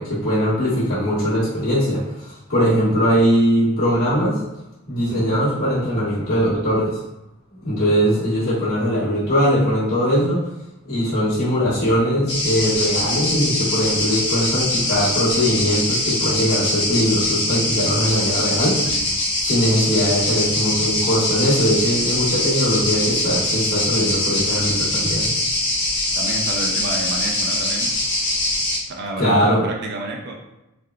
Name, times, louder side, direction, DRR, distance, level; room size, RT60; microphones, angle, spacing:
voice 1, 0.0-4.4 4.9-7.0 7.6-10.5 10.8-18.9 19.4-25.3 29.2-29.6, equal, 75° left, -11 dB, 1.4 m, -20 dB
sound 1, 12.3-28.8, left 1 dB, 55° left, 1.0 m, -22 dB
voice 2, 26.2-28.0 28.9-30.4, right 2 dB, 50° right, 1 dB, 0.4 m, -30 dB
3.5 x 2.2 x 2.3 m, 0.92 s
head